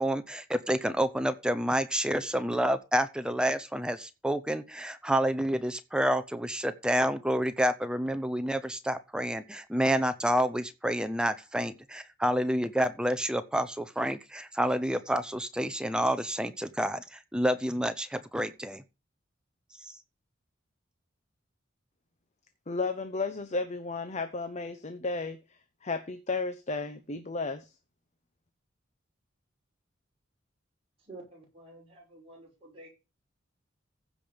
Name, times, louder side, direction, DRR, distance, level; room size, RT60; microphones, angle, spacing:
voice 1, 0.0-18.8, equal, 5° right, 0.7 m, -29 dB
voice 2, 22.7-25.4 25.8-27.7, left 3 dB, 35° left, 0.9 m, -33 dB
voice 3, 31.1-32.9, right 2 dB, 30° right, 5.8 m, -50 dB
15.0 x 5.2 x 5.2 m
head